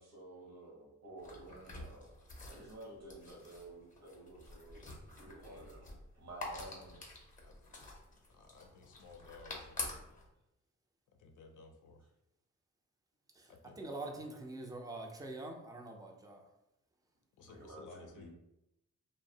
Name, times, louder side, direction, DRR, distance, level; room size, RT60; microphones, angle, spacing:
voice 1, 0.0-2.1 2.5-7.0 10.1-10.2 17.4-18.3, right 2 dB, 60° right, -1 dB, 0.8 m, -52 dB
sound 1, 1.2-10.3, left 2 dB, 25° left, 0.6 m, -48 dB
voice 2, 8.3-10.1 11.2-12.0 13.5-13.8 17.4-18.3, left 4 dB, 80° left, 4 dB, 0.5 m, -56 dB
voice 3, 13.8-16.4, right 2 dB, 10° right, 2 dB, 0.4 m, -44 dB
2.6 x 2.0 x 2.7 m, 0.86 s
wide cardioid pair, 120°, 30 cm